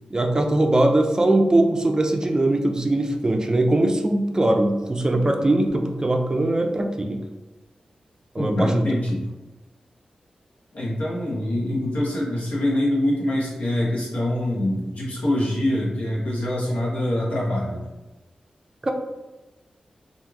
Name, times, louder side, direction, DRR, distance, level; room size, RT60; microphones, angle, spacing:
voice 1, 0.1-7.2 8.3-8.8 18.8-18.9, right 1 dB, 30° right, 4 dB, 0.4 m, -21 dB
voice 2, 8.4-9.2 10.7-17.9, left 1 dB, 80° left, -5 dB, 0.9 m, -24 dB
3.1 x 2.4 x 2.3 m, 1.1 s
cardioid pair, 65°, 2 cm